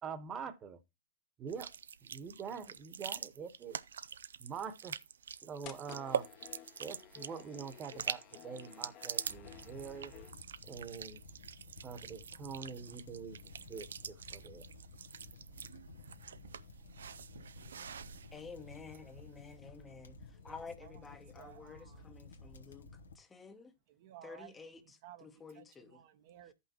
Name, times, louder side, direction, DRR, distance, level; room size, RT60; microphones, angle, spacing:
voice 1, 0.0-0.8 1.4-1.7 2.1-3.8 4.4-5.0 5.4-6.3 6.8-10.1 10.6-11.2 11.8-13.4 13.7-14.6, right 6 dB, 30° right, 1.2 m, -44 dB
sound 1, 1.5-19.4, right 7 dB, 85° right, 0.4 m, -45 dB
sound 2, 5.6-10.3, left 13 dB, 45° left, 1.0 m, -54 dB
sound 3, 9.2-23.2, left 3 dB, 90° left, 1.2 m, -55 dB
voice 2, 18.3-20.2 20.4-22.9 23.2-23.7 24.2-24.8 25.2-26.0, left 5 dB, 15° left, 0.9 m, -51 dB
voice 3, 20.3-22.2 23.9-26.5, right 12 dB, 60° right, 1.0 m, -57 dB
13.5 x 5.6 x 3.0 m
hypercardioid pair, 110°, 0 cm